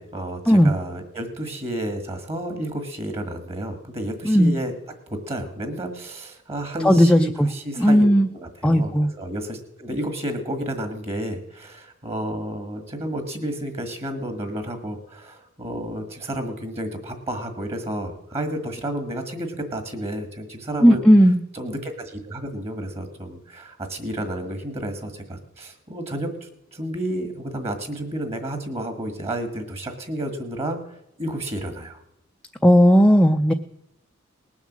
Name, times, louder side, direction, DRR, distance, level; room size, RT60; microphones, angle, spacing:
voice 1, 0.0-4.7 5.1-21.0 21.5-30.8 31.2-32.0, right 1 dB, 30° right, 7 dB, 1.7 m, -31 dB
voice 2, 6.8-7.5 7.8-8.3 8.6-9.1 20.8-21.4 32.6-33.5, equal, 5° left, 4 dB, 0.5 m, -15 dB
19.5 x 7.3 x 7.4 m, 0.85 s
head